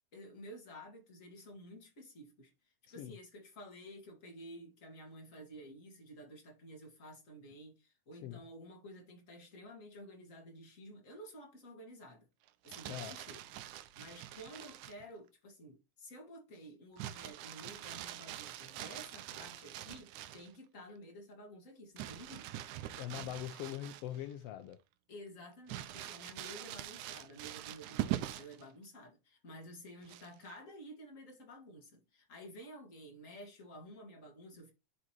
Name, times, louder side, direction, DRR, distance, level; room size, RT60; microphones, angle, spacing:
voice 1, 0.1-12.3 12.6-13.4 13.8-22.7 25.1-34.7, equal, 30° left, 2.0 m, -52 dB
Crumpling crinkling, 12.5-15.0 17.0-20.5 22.0-24.3 24.7-24.8 25.7-28.6 30.0-30.5, right 14 dB, 85° right, 2.1 m, -43 dB
voice 2, 23.0-24.8, left 12 dB, 80° left, 1.4 m, -42 dB
10.5 x 4.9 x 3.0 m
omnidirectional pair, 3.5 m